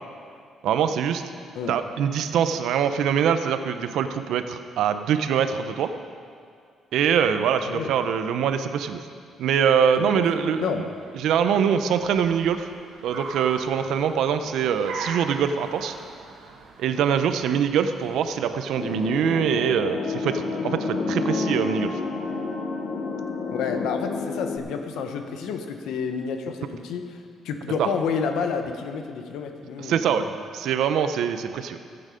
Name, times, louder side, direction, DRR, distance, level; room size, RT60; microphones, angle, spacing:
voice 1, 0.6-1.2 1.7-5.9 6.9-9.0 9.4-10.7 11.2-12.7 13.0-15.9 16.8-22.0 27.8-27.9 29.8-30.2 30.5-31.8, right 8 dB, 70° right, 9 dB, 0.7 m, -23 dB
Car, 9.6-19.8, right 4 dB, 90° right, 1.5 m, -42 dB
voice 2, 10.5-10.8 23.5-30.3, left 6 dB, 85° left, 6 dB, 1.1 m, -30 dB
sound 1, 18.8-24.6, left 4 dB, 45° left, 1.0 m, -29 dB
15.0 x 8.9 x 5.1 m, 2.2 s
cardioid pair, 175°, 0 cm